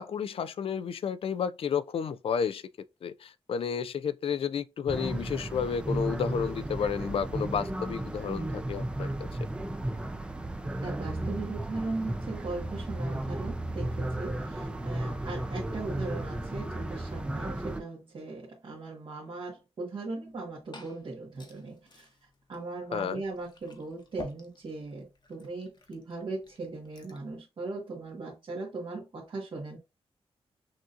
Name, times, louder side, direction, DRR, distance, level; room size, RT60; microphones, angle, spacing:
voice 1, 0.0-2.6 3.0-9.3 22.9-23.2, left 7 dB, 60° left, 0.4 m, -31 dB
sound 1, 4.9-17.8, right 1 dB, 10° right, 0.4 m, -34 dB
voice 2, 10.8-22.1 22.5-29.8, right 3 dB, 50° right, 1.4 m, -38 dB
Glass / Fill (with liquid), 20.2-27.3, left 3 dB, 45° left, 0.9 m, -52 dB
6.1 x 2.7 x 2.5 m
wide cardioid pair, 130°, 11 cm